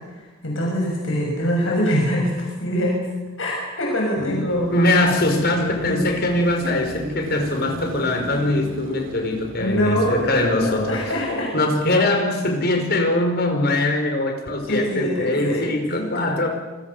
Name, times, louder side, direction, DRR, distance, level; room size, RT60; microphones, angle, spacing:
voice 1, 0.4-3.0 3.4-4.7 5.3-6.0 9.6-11.5 14.7-16.1, equal, 70° left, -2 dB, 6.4 m, -24 dB
voice 2, 4.2-11.0 11.5-16.5, left 1 dB, 50° left, 4 dB, 5.0 m, -22 dB
Car passing by / Traffic noise roadway noise / Engine, 4.5-11.8, right 2 dB, 80° right, 2.2 m, -37 dB
28.0 x 22.5 x 6.8 m, 1.2 s
head